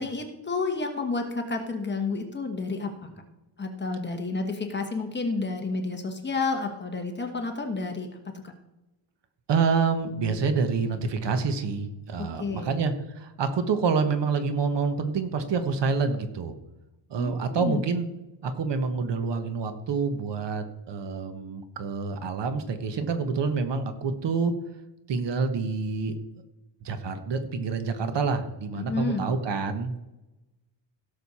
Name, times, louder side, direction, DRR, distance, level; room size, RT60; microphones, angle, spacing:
voice 1, 0.0-3.1 3.6-8.1 12.2-12.7 17.2-17.8 28.7-29.2, left 3 dB, 25° left, 4 dB, 1.3 m, -30 dB
voice 2, 9.5-16.5 17.1-18.1 18.4-24.5 25.1-26.1 26.8-30.0, right 5 dB, 65° right, 9 dB, 1.2 m, -27 dB
16.5 x 6.6 x 4.2 m, 0.98 s
wide cardioid pair, 180°, 46 cm